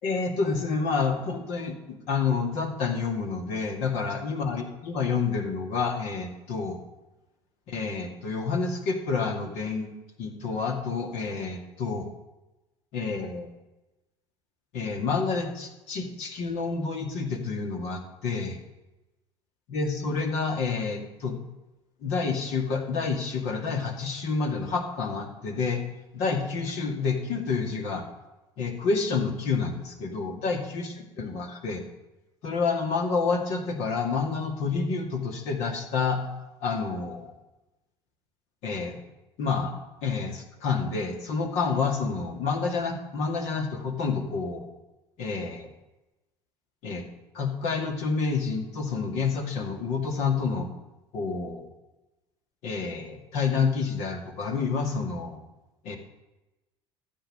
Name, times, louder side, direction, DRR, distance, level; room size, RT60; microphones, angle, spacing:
voice 1, 0.0-6.8 7.7-9.9 10.2-12.1 12.9-13.5 14.7-18.6 19.7-21.4 22.0-25.8 26.1-28.1 28.6-30.9 31.2-31.8 32.4-36.2 36.6-37.3 38.6-39.0 39.4-39.7 40.0-44.7 45.2-45.7 46.8-47.0 47.3-50.7 51.1-51.7 52.6-55.4 55.8-56.0, left 4 dB, 55° left, 4 dB, 2.3 m, -29 dB
14.0 x 7.1 x 7.8 m, 0.99 s
figure-of-eight pair, 65°, 13 cm